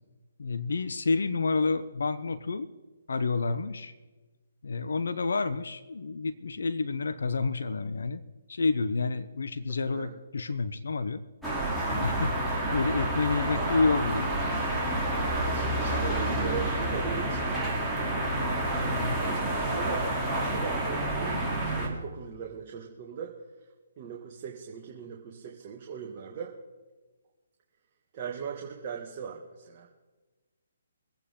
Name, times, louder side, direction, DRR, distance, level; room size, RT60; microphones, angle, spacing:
voice 1, 0.4-2.7 3.1-3.9 4.6-8.2 8.5-11.2 11.9-14.4 18.7-19.2, left 4 dB, 70° left, 13 dB, 0.9 m, -29 dB
sound 1, 11.4-21.9, right 1 dB, ahead, 3.1 m, -29 dB
voice 2, 15.5-17.6 19.0-23.3 24.0-26.5 28.1-29.9, right 7 dB, 35° right, -1 dB, 2.0 m, -39 dB
23.5 x 8.9 x 3.8 m, 1.3 s
figure-of-eight pair, 145°, 0 cm